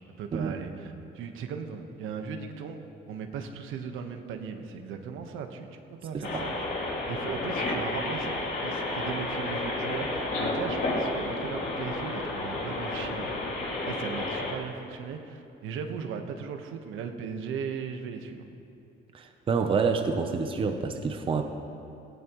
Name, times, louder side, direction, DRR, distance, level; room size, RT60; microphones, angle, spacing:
voice 1, 0.2-6.6 7.1-13.3 13.8-18.4, right 6 dB, 80° right, 5 dB, 1.2 m, -37 dB
sound 1, 6.2-14.5, left 2 dB, 55° left, 3.0 m, -31 dB
voice 2, 19.1-21.4, right 5 dB, 25° right, 5 dB, 0.7 m, -28 dB
18.0 x 17.0 x 3.1 m, 2.7 s
cardioid pair, 165°, 21 cm